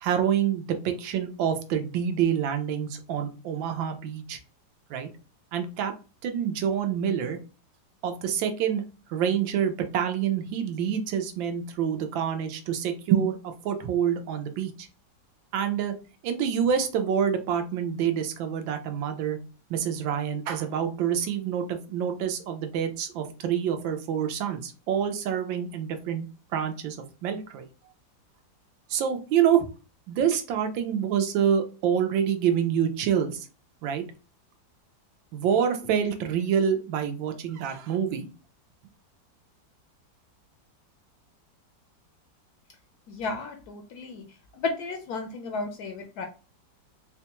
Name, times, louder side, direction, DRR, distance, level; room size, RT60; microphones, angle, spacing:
voice 1, 0.0-4.4 4.9-5.1 5.5-5.9 6.2-7.4 8.0-8.8 9.1-14.9 15.5-15.9 16.2-19.4 19.7-26.3 26.5-27.0 27.2-27.7 28.9-29.7 30.1-33.5 33.8-34.0 35.3-38.3, right 8 dB, 85° right, 7 dB, 1.4 m, -27 dB
voice 2, 43.1-44.2 44.5-46.3, left 3 dB, 70° left, 5 dB, 0.9 m, -33 dB
4.3 x 2.2 x 2.9 m, 0.34 s
omnidirectional pair, 2.0 m